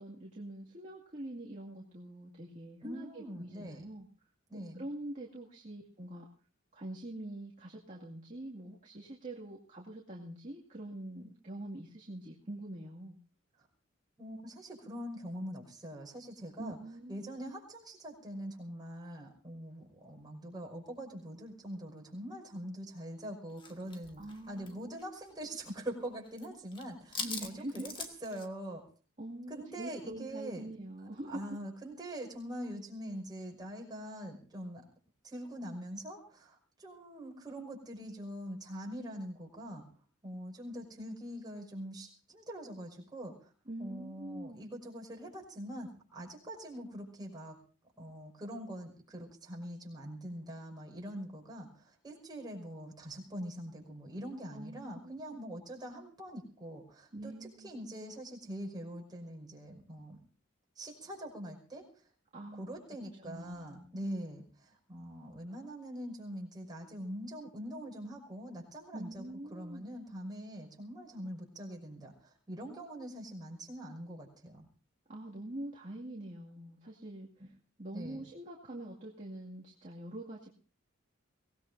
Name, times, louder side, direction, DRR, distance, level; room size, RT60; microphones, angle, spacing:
voice 1, 0.0-4.1 4.8-6.3 6.7-13.2 16.6-17.2 24.2-24.9 27.2-27.9 29.2-31.5 43.7-44.6 54.5-55.2 57.1-57.7 62.3-62.7 63.2-63.9 68.9-69.9 75.1-77.5 77.8-80.5, right 1 dB, 40° right, -4 dB, 2.3 m, -44 dB
voice 2, 2.8-3.8 4.5-4.8 14.2-16.8 17.1-28.8 29.5-30.7 31.3-34.8 35.2-39.9 40.2-43.5 43.8-47.6 48.0-60.2 60.8-61.9 62.6-69.2 69.5-74.7 77.4-77.5 77.9-78.2, equal, 20° right, -1 dB, 5.7 m, -43 dB
sound 1, 23.6-25.7 26.0-26.5 26.7-28.5, left 4 dB, 25° left, 1.7 m, -43 dB
24.0 x 18.5 x 2.7 m, 0.39 s
head